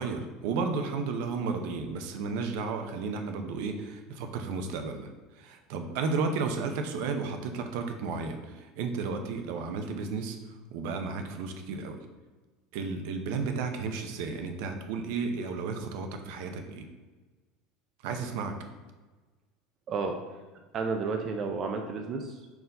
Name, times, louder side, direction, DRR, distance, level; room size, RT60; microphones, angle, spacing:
voice 1, 0.0-5.1 5.4-8.4 8.8-10.4 10.7-12.0 12.7-16.8 18.0-18.5, right 4 dB, 65° right, 6 dB, 0.7 m, -33 dB
voice 2, 19.9-20.2 20.7-22.5, right 4 dB, 30° right, 4 dB, 0.4 m, -32 dB
4.7 x 3.9 x 5.3 m, 1.3 s
cardioid pair, 170°, 0 cm